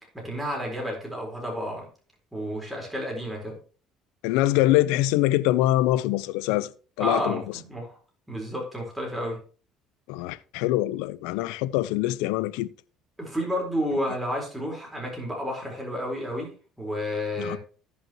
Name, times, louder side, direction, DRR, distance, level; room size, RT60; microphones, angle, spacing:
voice 1, 0.1-1.9 2.3-3.6 7.0-8.0 8.3-9.4 13.2-16.5 16.8-17.6, equal, 10° right, 4.3 m, -31 dB
voice 2, 4.2-6.7 7.0-7.4 10.1-12.7 17.4-17.6, left 15 dB, 85° left, 0.5 m, -24 dB
16.0 x 5.6 x 3.0 m
supercardioid pair, 90°, 0 cm